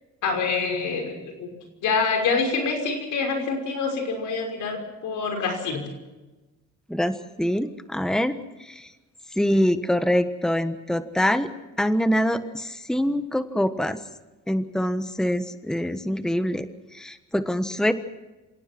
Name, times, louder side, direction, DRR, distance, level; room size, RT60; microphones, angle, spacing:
voice 1, 0.2-1.5 1.8-5.8, left 4 dB, 80° left, 4 dB, 5.9 m, -26 dB
voice 2, 6.9-8.9 9.3-11.5 11.8-14.0 14.5-17.9, equal, ahead, 10 dB, 1.3 m, -25 dB
27.5 x 17.5 x 6.1 m, 1.1 s
cardioid pair, 90°, 30 cm